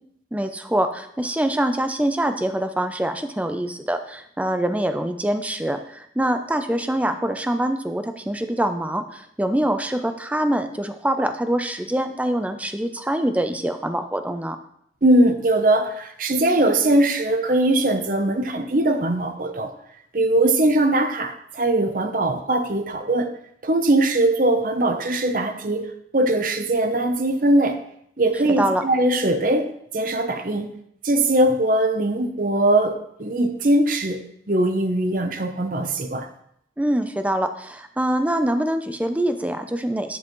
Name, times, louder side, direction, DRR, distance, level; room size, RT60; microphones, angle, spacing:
voice 1, 0.3-14.6 28.6-28.8 36.8-40.2, right 1 dB, 10° right, 8 dB, 0.4 m, -24 dB
voice 2, 15.0-19.7 20.1-23.3 23.6-27.8 28.2-30.7 31.0-34.2 34.5-36.3, right 1 dB, 50° right, 8 dB, 0.7 m, -21 dB
10.0 x 5.5 x 3.0 m, 0.72 s
head